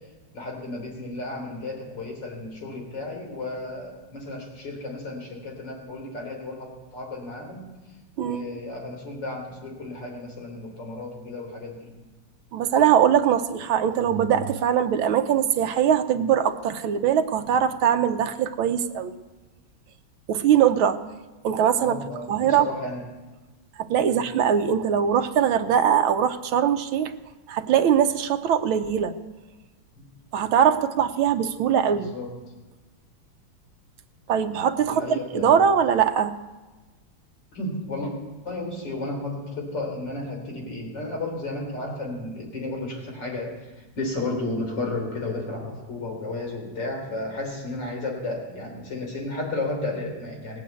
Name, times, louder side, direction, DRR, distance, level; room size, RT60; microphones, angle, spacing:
voice 1, 0.3-7.6 8.2-11.9 21.8-23.0 24.1-24.3 31.9-32.3 34.8-35.5 37.5-38.1 38.4-50.6, left 2 dB, 60° left, 0 dB, 4.2 m, -33 dB
voice 2, 12.5-19.2 20.3-21.0 21.4-22.0 22.3-22.7 23.9-27.1 27.5-29.1 30.3-32.1 34.3-36.3, right 8 dB, 85° right, 8 dB, 1.6 m, -21 dB
19.5 x 8.5 x 8.2 m, 1.2 s
omnidirectional pair, 2.2 m